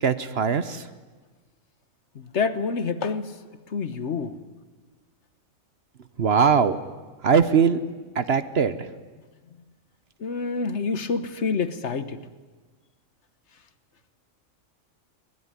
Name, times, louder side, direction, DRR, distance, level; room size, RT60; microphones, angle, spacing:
voice 1, 0.0-0.8 6.2-6.8 7.2-7.8 8.2-8.8, right 6 dB, 55° right, 13 dB, 1.1 m, -20 dB
voice 2, 2.1-3.3 3.7-4.4 10.2-12.2, left 5 dB, 60° left, 13 dB, 1.4 m, -27 dB
22.5 x 19.0 x 9.8 m, 1.3 s
omnidirectional pair, 1.4 m